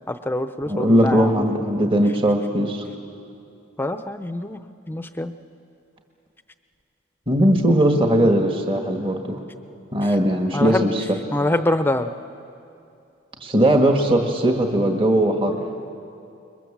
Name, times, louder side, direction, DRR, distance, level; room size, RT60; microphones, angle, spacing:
voice 1, 0.0-1.5 3.8-4.6 4.9-5.3 10.5-10.9 11.3-12.1, left 1 dB, 10° left, 9 dB, 0.7 m, -25 dB
voice 2, 0.7-2.8 7.3-9.4 9.9-11.2 13.4-15.6, right 1 dB, 25° right, 3 dB, 1.6 m, -19 dB
29.0 x 22.5 x 7.4 m, 2.6 s
head